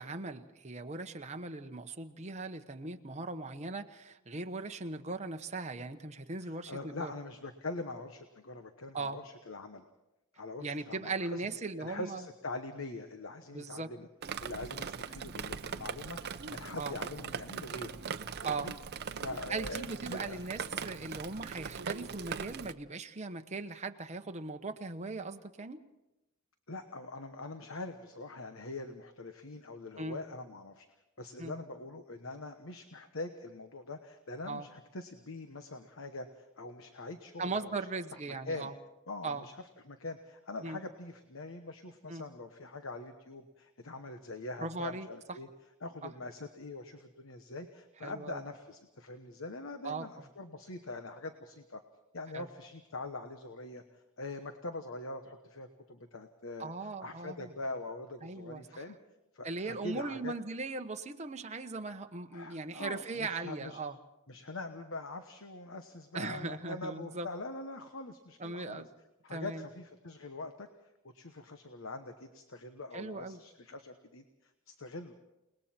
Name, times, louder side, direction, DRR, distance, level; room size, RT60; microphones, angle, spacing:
voice 1, 0.0-7.1 8.9-9.2 10.6-12.2 13.5-13.9 16.8-17.0 18.4-18.7 19.5-25.8 30.0-30.2 31.4-31.5 34.5-34.7 37.4-38.7 39.2-39.4 40.6-40.8 42.1-42.2 44.6-45.1 46.0-46.1 48.0-48.4 49.8-50.1 52.3-52.5 56.6-57.5 58.2-58.8 59.4-64.0 66.1-67.3 68.4-68.9 69.3-69.6 72.9-73.4, right 3 dB, 35° right, 6 dB, 1.1 m, -39 dB
voice 2, 6.4-9.8 10.4-11.5 11.8-14.1 14.4-18.7 19.2-20.4 26.7-30.9 31.2-37.7 38.4-38.7 39.1-39.6 39.8-45.5 45.8-51.8 52.1-53.8 54.2-56.7 57.0-59.0 59.3-60.3 62.3-63.8 64.3-68.8 69.2-70.7 71.1-75.1, left 2 dB, 70° left, 7 dB, 1.2 m, -43 dB
Drip, 14.2-22.7, right 6 dB, 50° right, 0.7 m, -40 dB
29.5 x 20.0 x 4.4 m, 0.96 s
head